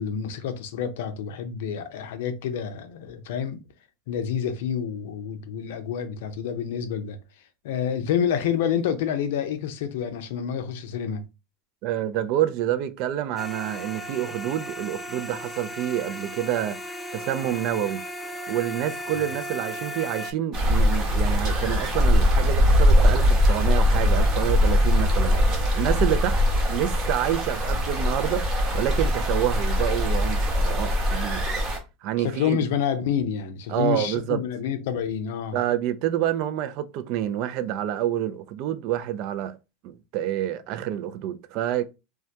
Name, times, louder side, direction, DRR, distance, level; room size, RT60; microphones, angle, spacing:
voice 1, 0.0-3.6 4.1-7.2 7.6-11.2 19.1-19.3 32.2-35.6, left 8 dB, 75° left, 0.4 m, -28 dB
voice 2, 11.8-16.8 17.1-18.0 18.5-25.3 25.7-26.4 26.7-31.5 32.0-32.6 33.7-34.4 35.5-39.6 39.8-41.8, right 11 dB, 55° right, 0.3 m, -28 dB
sound 1, 13.4-20.3, equal, 10° left, 0.4 m, -36 dB
sound 2, 20.5-31.8, left 1 dB, 40° right, 0.9 m, -21 dB
2.2 x 2.1 x 2.7 m
supercardioid pair, 110°, 0 cm